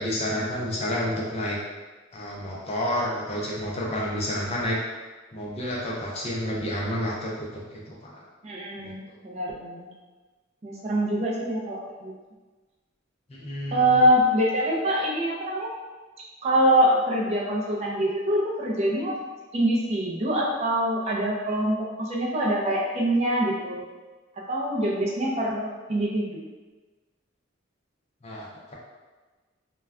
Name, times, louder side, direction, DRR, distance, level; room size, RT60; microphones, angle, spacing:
voice 1, 0.0-1.6 2.1-4.8 5.3-8.2 8.8-8.9 13.3-14.1 28.2-28.7, left 1 dB, 30° left, -4 dB, 0.5 m, -30 dB
voice 2, 8.4-9.9 10.6-12.1 13.7-15.7 16.4-19.2 19.5-23.9 24.5-26.3, right 1 dB, 30° right, -3 dB, 0.4 m, -24 dB
2.2 x 2.2 x 3.4 m, 1.3 s
head